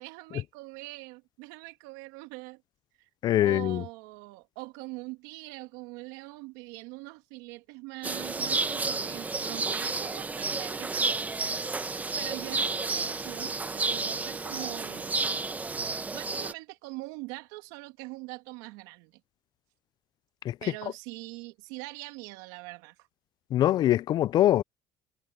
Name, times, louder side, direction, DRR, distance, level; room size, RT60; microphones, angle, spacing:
voice 1, 0.0-2.6 3.4-11.4 12.1-15.4 16.1-19.2 20.6-22.9, right 23 dB, 85° right, 2.6 m, -43 dB
voice 2, 3.2-3.8 20.4-20.6 23.5-24.6, left 13 dB, 50° left, 0.4 m, -23 dB
sound 1, 8.0-16.5, right 3 dB, 15° right, 1.2 m, -31 dB
supercardioid pair, 105°, 9 cm